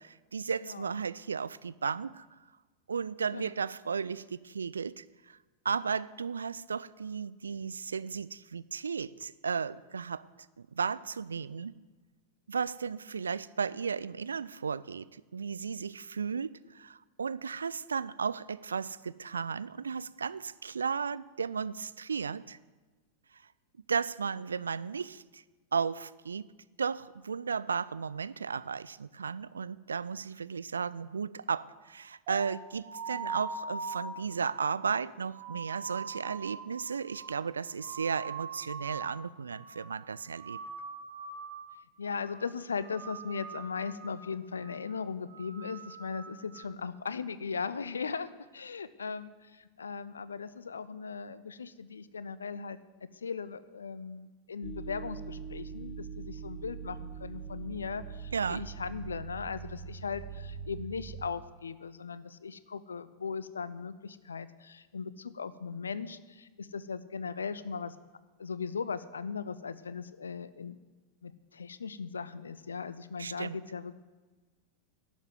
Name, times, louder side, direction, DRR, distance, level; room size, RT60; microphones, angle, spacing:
voice 1, 0.0-2.3 2.9-5.4 5.6-10.2 10.6-11.7 12.5-22.6 23.9-25.4 25.7-26.5 26.8-40.6 58.3-58.7 73.2-73.6, right 6 dB, 70° right, 18 dB, 0.4 m, -34 dB
voice 2, 0.6-0.9 3.3-3.5 33.1-33.3 42.0-68.0 68.4-70.8 71.2-74.0, left 5 dB, 70° left, 16 dB, 0.6 m, -38 dB
sound 1, 32.3-39.2 39.5-40.0 40.3-41.8 42.0-42.5 42.8-44.2 44.6-44.9 45.3-46.6, right 5 dB, 45° right, 2.2 m, -43 dB
sound 2, 54.6-61.3, right 6 dB, 20° right, 1.7 m, -42 dB
11.5 x 7.2 x 9.4 m, 1.3 s
figure-of-eight pair, 90°, 0 cm